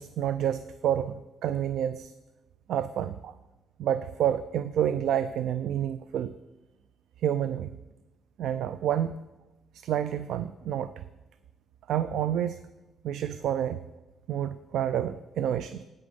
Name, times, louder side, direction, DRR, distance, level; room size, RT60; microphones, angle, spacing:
voice 1, 0.0-2.1 2.7-3.3 3.8-6.3 7.2-7.8 8.4-9.2 9.7-11.0 11.9-12.6 13.0-13.8 14.3-15.8, right 10 dB, 75° right, 13 dB, 0.4 m, -29 dB
9.2 x 8.3 x 5.3 m, 1.1 s
cardioid pair, 90°, 0 cm